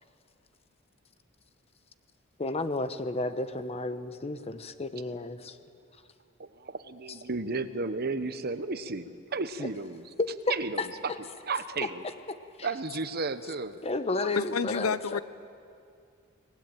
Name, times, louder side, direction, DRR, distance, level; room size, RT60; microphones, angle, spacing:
voice 1, 2.4-5.6 9.6-9.7 10.2-10.9 11.8-12.7 13.8-15.2, left 2 dB, 30° left, 1.0 m, -32 dB
voice 2, 6.4-10.0 10.5-11.1 11.5-12.0 12.6-13.8, right 3 dB, 45° right, 1.0 m, -33 dB
voice 3, 14.2-15.2, left 6 dB, 80° left, 0.7 m, -29 dB
24.5 x 20.0 x 9.0 m
head